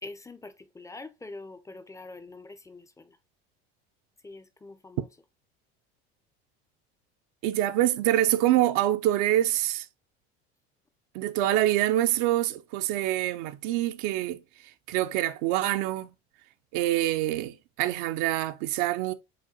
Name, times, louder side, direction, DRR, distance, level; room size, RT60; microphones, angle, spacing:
voice 1, 0.0-3.2 4.2-5.1, left 2 dB, 10° left, 0.5 m, -44 dB
voice 2, 7.4-9.9 11.1-14.4 14.9-16.1 16.7-19.1, right 14 dB, 65° right, 0.6 m, -25 dB
4.9 x 3.5 x 2.8 m
hypercardioid pair, 85°, 32 cm